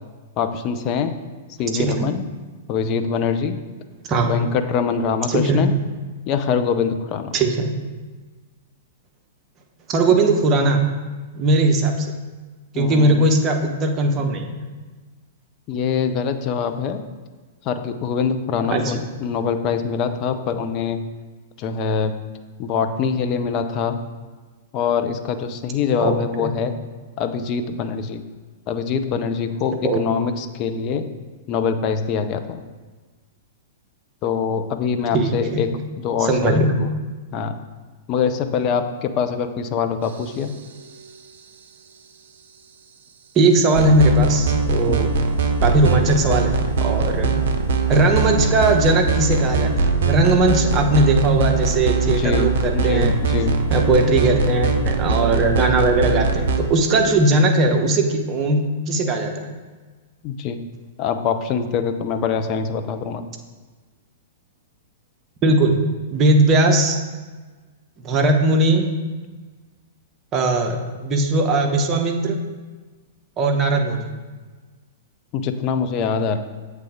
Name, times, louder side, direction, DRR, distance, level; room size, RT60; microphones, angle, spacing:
voice 1, 0.4-1.1 1.6-2.2 2.7-3.6 4.2-5.7 6.3-7.4 12.7-13.2 15.7-17.0 17.6-21.0 21.6-22.1 22.6-24.0 24.7-26.7 27.2-28.3 28.7-31.1 31.5-32.6 34.2-36.9 37.3-37.5 38.1-40.5 44.9-45.0 52.0-53.6 60.2-60.6 61.0-63.3 75.3-76.4, left 6 dB, 35° left, 8 dB, 0.5 m, -24 dB
voice 2, 1.7-2.1 4.1-4.3 5.3-5.6 7.3-7.7 9.9-10.8 11.4-12.1 12.7-14.5 18.7-18.9 26.0-26.5 29.8-30.0 35.1-35.6 36.2-36.7 43.3-45.1 45.6-47.4 47.9-53.2 53.7-59.6 65.4-65.8 66.1-67.0 68.0-68.9 70.3-72.4 73.4-74.1, right 2 dB, 30° right, 3 dB, 0.9 m, -19 dB
sound 1, 43.7-56.6, right 4 dB, 55° right, 0.6 m, -21 dB
7.6 x 3.4 x 5.1 m, 1.3 s
figure-of-eight pair, 105°, 0 cm